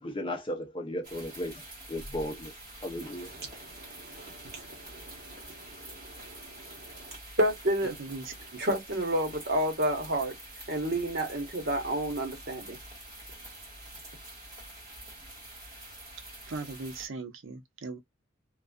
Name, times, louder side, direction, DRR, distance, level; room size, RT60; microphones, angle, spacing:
voice 1, 0.0-1.6 1.9-2.5 2.8-3.3, left 1 dB, 25° left, 0.5 m, -35 dB
sound 1, 1.0-17.1, right 1 dB, 20° right, 1.5 m, -47 dB
voice 2, 3.0-7.9 8.6-10.4 10.7-12.8, right 1 dB, 50° right, 1.0 m, -31 dB
voice 3, 8.0-8.3 16.5-18.0, right 3 dB, 65° right, 0.6 m, -39 dB
2.5 x 2.3 x 2.2 m
head